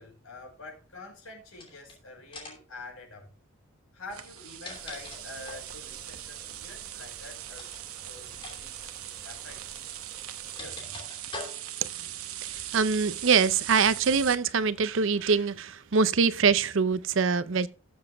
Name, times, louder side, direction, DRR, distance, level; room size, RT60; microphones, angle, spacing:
voice 1, 0.0-3.3 3.9-9.8 10.6-11.1, left 2 dB, 75° left, 5.6 m, -47 dB
sound 1, 1.5-1.9 2.3-2.7 4.2-5.7 7.5-7.8 8.3-8.6 8.8-9.0 9.9-11.9, left 3 dB, 25° left, 2.9 m, -43 dB
sound 2, 4.1-14.4, right 12 dB, 90° right, 0.9 m, -40 dB
sound 3, 4.7-10.6, right 1 dB, 5° right, 2.0 m, -54 dB
voice 2, 12.0-17.7, right 5 dB, 60° right, 0.5 m, -24 dB
18.5 x 7.1 x 2.3 m
head